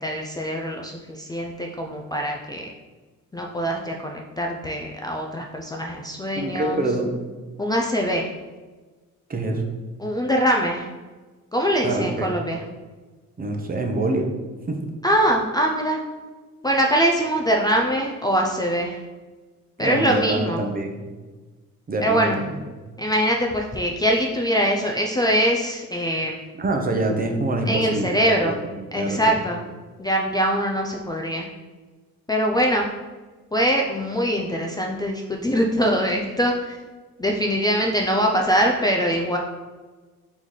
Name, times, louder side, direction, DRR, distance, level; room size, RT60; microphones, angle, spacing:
voice 1, 0.0-2.7 3.3-6.8 7.6-8.3 10.0-10.9 11.5-12.6 15.0-16.0 16.6-19.0 19.8-20.6 22.0-22.4 23.0-26.4 27.7-28.6 28.9-29.6 30.0-31.5 32.3-32.9 33.5-36.8 37.2-39.4, equal, 15° left, 0 dB, 0.4 m, -23 dB
voice 2, 6.3-7.2 9.3-9.6 11.8-12.3 13.4-14.3 14.7-14.8 19.8-21.1 21.9-22.5 26.6-28.6 28.9-29.2, right 2 dB, 30° right, 3 dB, 0.7 m, -25 dB
4.0 x 3.8 x 3.1 m, 1.3 s
cardioid pair, 90°, 30 cm